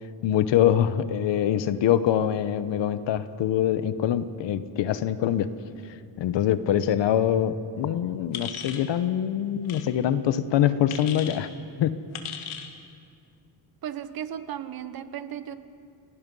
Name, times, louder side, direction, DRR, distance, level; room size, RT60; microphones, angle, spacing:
voice 1, 0.2-5.5 6.2-11.5 11.8-12.0, left 10 dB, 60° left, 13 dB, 0.9 m, -24 dB
sound 1, 8.3-8.9 9.6-9.8 10.9-11.4 12.1-12.7, left 8 dB, 85° left, 2.0 m, -36 dB
voice 2, 13.8-15.5, right 10 dB, 45° right, 12 dB, 1.0 m, -35 dB
30.0 x 17.5 x 5.5 m, 2.4 s
cardioid pair, 165°, 48 cm